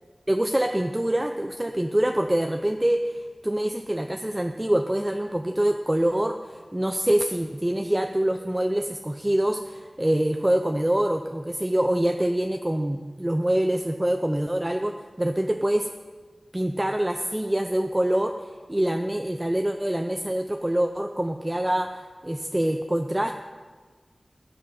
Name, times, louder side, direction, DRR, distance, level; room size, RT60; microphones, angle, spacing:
voice 1, 0.3-15.9 16.5-23.3, right 1 dB, 15° right, 5 dB, 0.5 m, -25 dB
14.5 x 8.8 x 4.2 m, 1.4 s
wide cardioid pair, 75°, 0 cm